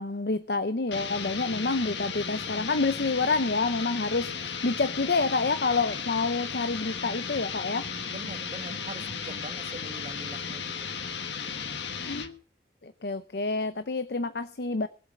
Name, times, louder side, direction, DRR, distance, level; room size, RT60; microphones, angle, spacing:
voice 1, 0.0-7.9 12.1-12.2 12.8-14.9, left 3 dB, 65° left, 11 dB, 0.7 m, -28 dB
sound 1, 0.9-12.4, left 6 dB, 90° left, 1.4 m, -35 dB
voice 2, 8.1-10.9, right 1 dB, 40° right, 9 dB, 1.3 m, -43 dB
19.5 x 8.1 x 6.2 m, 0.41 s
head